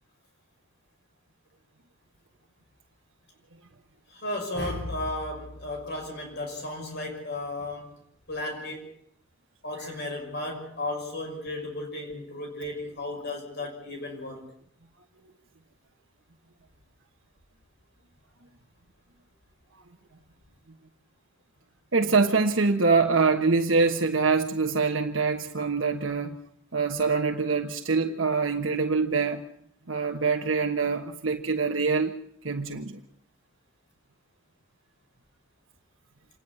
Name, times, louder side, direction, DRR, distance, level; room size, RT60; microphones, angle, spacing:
voice 1, 4.1-8.0 8.3-8.9 9.6-14.4, left 2 dB, 55° left, 6.1 m, -34 dB
voice 2, 21.9-26.4 26.7-29.4 29.9-32.1 32.4-33.0, right 4 dB, 70° right, 1.3 m, -24 dB
27.0 x 10.5 x 9.8 m
head